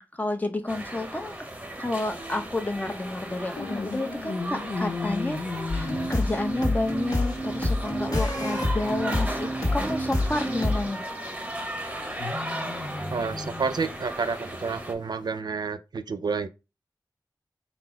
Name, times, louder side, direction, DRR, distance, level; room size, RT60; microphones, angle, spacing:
voice 1, 0.0-1.4 1.8-5.4 5.7-11.0, left 2 dB, 20° left, 0.7 m, -30 dB
sound 1, 0.7-14.9, right 1 dB, 15° right, 0.8 m, -36 dB
sound 2, 1.9-15.4, left 4 dB, 85° left, 0.6 m, -39 dB
sound 3, 5.7-10.9, left 1 dB, 55° left, 1.4 m, -27 dB
voice 2, 13.1-16.5, right 5 dB, 65° right, 0.4 m, -29 dB
3.9 x 2.0 x 4.4 m
wide cardioid pair, 85°, 8 cm